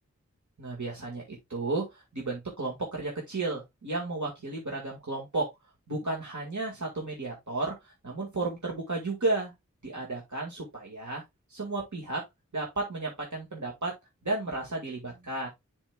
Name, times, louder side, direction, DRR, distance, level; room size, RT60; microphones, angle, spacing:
voice 1, 0.6-5.5 5.9-9.5 9.8-11.2 11.5-12.2 12.5-14.0 14.2-15.5, right 2 dB, 75° right, 2.0 m, -33 dB
10.0 x 4.4 x 2.3 m
wide cardioid pair, 40°, 29 cm